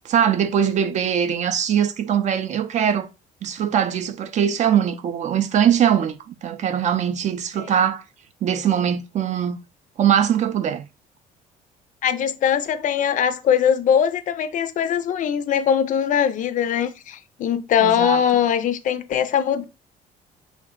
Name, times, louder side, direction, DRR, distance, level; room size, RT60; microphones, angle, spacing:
voice 1, 0.0-3.1 3.4-8.0 8.4-9.6 10.0-10.9 17.8-18.2, right 9 dB, 45° right, 0.4 m, -21 dB
voice 2, 12.0-19.6, left 8 dB, 50° left, 0.4 m, -21 dB
3.4 x 2.1 x 3.6 m
cardioid pair, 110°, 17 cm